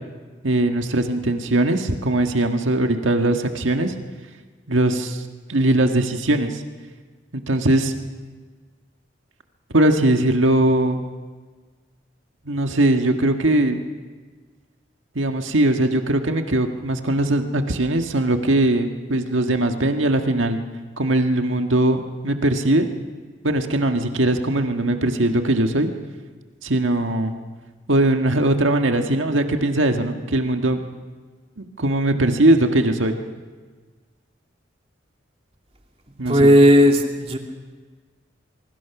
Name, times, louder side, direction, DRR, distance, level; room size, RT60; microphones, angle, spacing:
voice 1, 0.4-3.9 4.7-5.2 5.5-6.6 7.3-7.9 9.7-11.0 12.5-13.8 15.2-20.6 21.0-22.9 23.4-25.9 26.6-27.3 27.9-30.8 31.6-33.2 36.2-36.5, right 1 dB, 90° right, 5 dB, 1.7 m, -20 dB
voice 2, 36.3-37.4, equal, 30° right, 2 dB, 2.4 m, -14 dB
24.5 x 24.0 x 6.1 m, 1.4 s
head